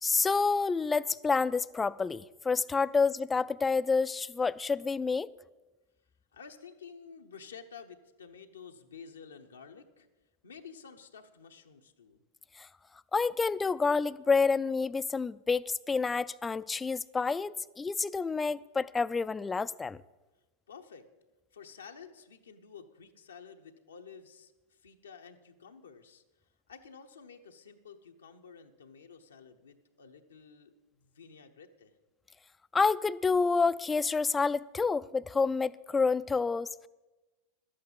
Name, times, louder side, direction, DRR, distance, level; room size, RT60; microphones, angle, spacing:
voice 1, 0.0-5.3 12.6-12.7 13.1-20.0 32.7-36.9, left 4 dB, 15° left, 0.4 m, -28 dB
voice 2, 6.3-10.1 10.4-12.2 20.7-21.1 21.5-26.2 26.7-32.0, left 6 dB, 85° left, 1.0 m, -51 dB
12.0 x 8.8 x 7.3 m
hypercardioid pair, 95°, 0 cm